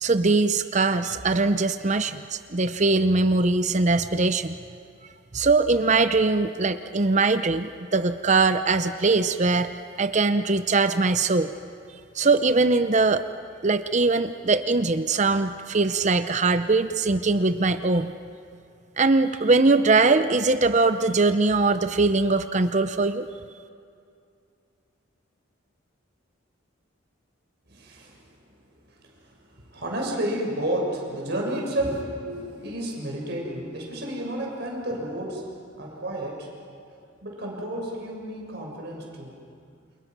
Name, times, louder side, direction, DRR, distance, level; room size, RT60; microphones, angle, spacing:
voice 1, 0.0-4.6 5.3-9.7 10.0-11.5 12.1-13.2 13.6-18.1 19.0-23.3, right 3 dB, 35° right, 10 dB, 0.7 m, -21 dB
voice 2, 27.7-28.4 28.7-36.5 37.2-39.3, right 1 dB, 55° right, -1 dB, 6.4 m, -31 dB
29.0 x 28.5 x 6.1 m, 2.4 s
head